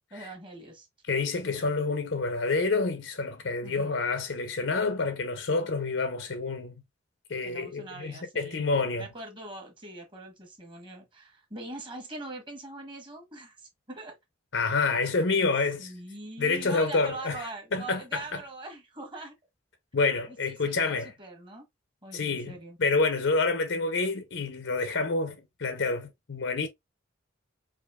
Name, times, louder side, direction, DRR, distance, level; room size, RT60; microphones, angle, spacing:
voice 1, 0.1-0.9 3.6-4.0 7.4-14.2 15.8-19.3 20.3-21.6 22.0-22.8, right 2 dB, 25° right, 1.3 m, -42 dB
voice 2, 1.1-6.7 7.3-9.1 14.5-15.9 16.4-18.4 19.9-21.1 22.1-22.5 22.8-26.7, left 3 dB, 75° left, 0.7 m, -28 dB
4.9 x 2.6 x 2.3 m
head